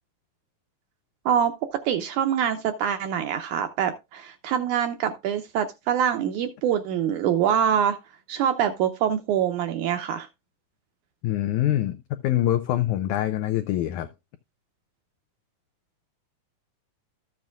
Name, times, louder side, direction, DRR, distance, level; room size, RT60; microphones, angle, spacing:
voice 1, 1.9-8.0 8.3-10.3, right 9 dB, 80° right, 1.9 m, -24 dB
voice 2, 11.2-14.1, left 13 dB, 90° left, 1.7 m, -24 dB
13.5 x 7.4 x 2.4 m
omnidirectional pair, 4.1 m